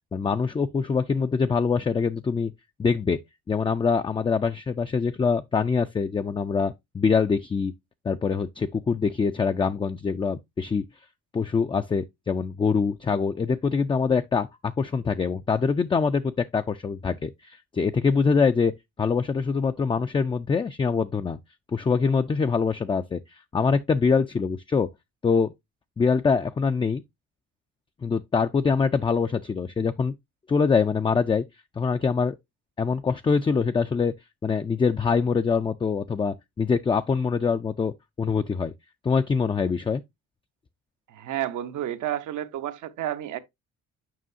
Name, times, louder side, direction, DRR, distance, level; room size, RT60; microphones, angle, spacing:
voice 1, 0.1-2.5 2.8-3.2 3.5-7.7 8.0-10.8 11.3-14.5 14.8-18.7 19.0-21.4 21.7-24.9 25.2-25.5 26.0-27.0 28.0-30.1 30.5-31.4 31.8-32.4 32.8-34.1 34.4-38.7 39.0-40.0, left 5 dB, 20° left, 0.3 m, -24 dB
voice 2, 41.1-43.4, right 12 dB, 80° right, 0.9 m, -31 dB
7.6 x 5.4 x 2.6 m
cardioid pair, 90°, 30 cm